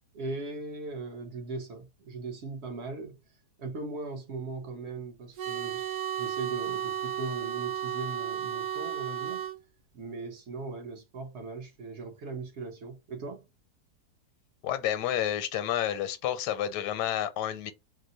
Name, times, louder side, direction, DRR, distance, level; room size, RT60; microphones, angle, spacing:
voice 1, 0.1-3.2 3.6-9.5 9.9-13.5, right 3 dB, 55° right, 0.8 m, -39 dB
sound 1, 5.4-9.6, right 9 dB, 75° right, 1.1 m, -33 dB
voice 2, 14.6-17.7, left 11 dB, 85° left, 1.1 m, -30 dB
2.8 x 2.0 x 3.8 m
omnidirectional pair, 1.7 m